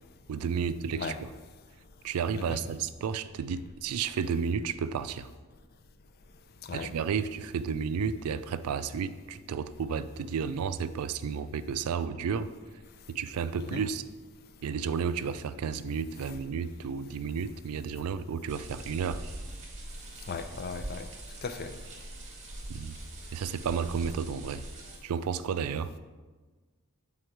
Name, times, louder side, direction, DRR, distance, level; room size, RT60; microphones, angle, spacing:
voice 1, 0.3-1.3 2.0-5.3 6.7-12.5 13.1-14.0 14.6-19.2 22.7-23.0 23.3-24.6 25.0-25.9, right 6 dB, 90° right, 13 dB, 0.4 m, -32 dB
sound 1, 18.5-25.0, right 1 dB, 30° right, 1.1 m, -43 dB
voice 2, 20.3-21.1 21.4-21.7, left 5 dB, 45° left, 9 dB, 0.4 m, -36 dB
7.9 x 3.7 x 4.5 m, 1.3 s
head